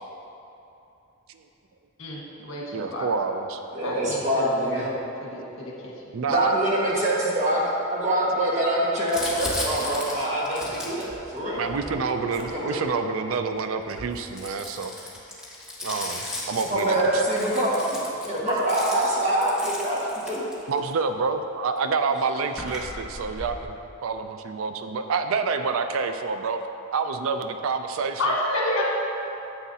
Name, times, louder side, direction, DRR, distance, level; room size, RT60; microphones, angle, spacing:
voice 1, 2.0-3.1 3.8-5.7 28.2-28.8, left 1 dB, 65° left, -3 dB, 1.5 m, -30 dB
voice 2, 2.7-3.6 6.1-6.5 11.5-14.9 15.8-17.2 20.7-26.6 26.9-28.3, right 4 dB, 70° right, 7 dB, 0.4 m, -28 dB
voice 3, 3.7-4.9 6.3-11.6 12.4-12.8 16.7-20.0 20.3-20.4, right 1 dB, 35° right, -6 dB, 1.6 m, -25 dB
Crumpling crinkling, 9.1-13.1 13.8-20.9 21.8-21.9 22.0-23.6, left 1 dB, 5° right, 1.4 m, -36 dB
9.8 x 7.9 x 2.8 m, 2.8 s
head